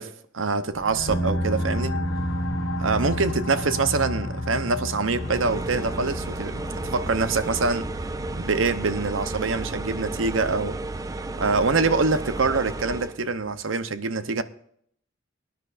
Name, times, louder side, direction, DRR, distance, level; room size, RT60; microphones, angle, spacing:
voice 1, 0.0-2.0 2.8-7.9 8.4-10.8 11.4-14.4, right 4 dB, 85° right, 0.9 m, -25 dB
sound 1, 0.7-12.1, left 3 dB, 80° left, 1.2 m, -35 dB
sound 2, 1.1-13.6, right 1 dB, 15° left, 3.0 m, -34 dB
Spin dryer, 5.1-13.2, right 2 dB, 15° right, 0.4 m, -33 dB
19.0 x 10.5 x 2.6 m
head